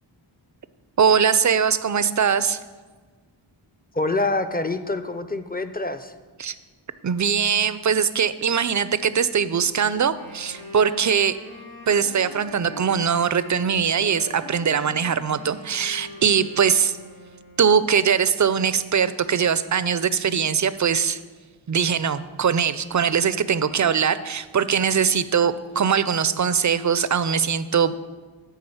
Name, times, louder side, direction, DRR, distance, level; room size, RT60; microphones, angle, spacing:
voice 1, 1.0-2.6 6.4-6.5 7.0-11.4 11.9-17.0 17.6-21.2 21.7-28.0, right 7 dB, 40° right, 14 dB, 0.4 m, -21 dB
voice 2, 3.9-6.1, left 2 dB, 20° left, 9 dB, 0.5 m, -26 dB
Wind instrument woodwind instrument, 10.0-17.8, left 1 dB, 55° left, 2.9 m, -42 dB
10.5 x 3.8 x 7.0 m, 1.4 s
wide cardioid pair, 40°, 49 cm